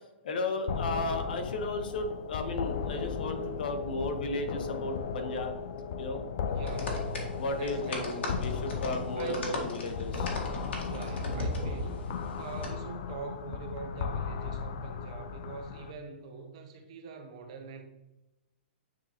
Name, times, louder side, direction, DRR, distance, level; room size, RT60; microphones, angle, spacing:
voice 1, 0.2-5.5 6.0-6.2 7.4-10.3, left 2 dB, 50° left, 0.9 m, -34 dB
sound 1, 0.7-15.9, left 6 dB, 35° left, 0.4 m, -36 dB
voice 2, 6.5-8.5 9.2-9.4 10.9-12.1 12.4-17.8, right 5 dB, 35° right, 0.7 m, -43 dB
sound 2, 6.7-12.7, left 1 dB, 85° left, 1.8 m, -37 dB
8.8 x 3.7 x 2.9 m
hypercardioid pair, 175°, 6 cm